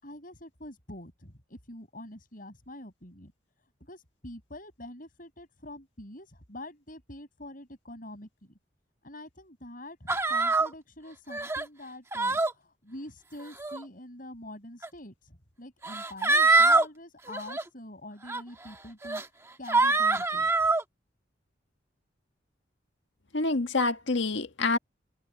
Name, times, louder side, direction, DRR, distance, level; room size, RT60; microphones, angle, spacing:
voice 1, 0.0-3.3 3.8-8.3 9.0-19.2 19.6-20.5, left 1 dB, 50° left, 6.9 m, -45 dB
sound 1, 10.1-10.7 11.3-11.7 12.1-12.5 13.4-13.8 14.8-14.9 15.8-16.9 17.3-17.6 18.3-18.4 19.0-19.2 19.7-20.8, right 3 dB, 15° right, 1.4 m, -24 dB
voice 2, 23.3-24.8, left 3 dB, 80° left, 1.7 m, -27 dB
head